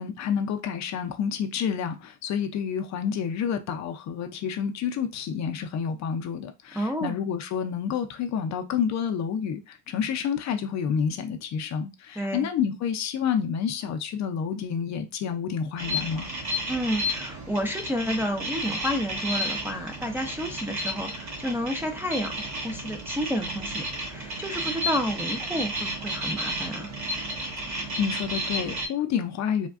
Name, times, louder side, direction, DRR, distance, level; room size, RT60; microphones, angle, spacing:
voice 1, 0.0-16.3 27.6-29.7, left 7 dB, 50° left, 0.5 m, -29 dB
voice 2, 6.7-7.2 12.2-12.5 16.7-26.9, equal, 5° right, 0.4 m, -30 dB
sound 1, 15.8-28.9, equal, 50° right, 1.1 m, -32 dB
3.4 x 2.2 x 2.4 m
cardioid pair, 110°, 35 cm